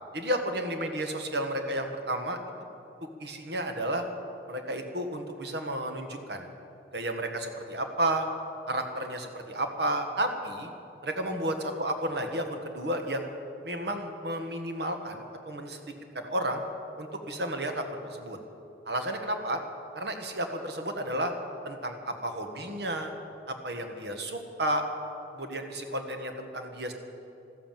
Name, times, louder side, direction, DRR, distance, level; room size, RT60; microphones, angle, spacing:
voice 1, 0.1-2.4 3.2-4.0 4.5-6.5 6.9-8.3 8.7-10.7 11.0-13.3 13.6-15.8 16.1-16.6 17.0-18.4 18.8-19.6 19.9-21.3 21.6-23.1 23.5-24.8 25.3-26.9, right 1 dB, 70° right, 5 dB, 1.6 m, -32 dB
14.5 x 13.5 x 7.5 m, 2.8 s
head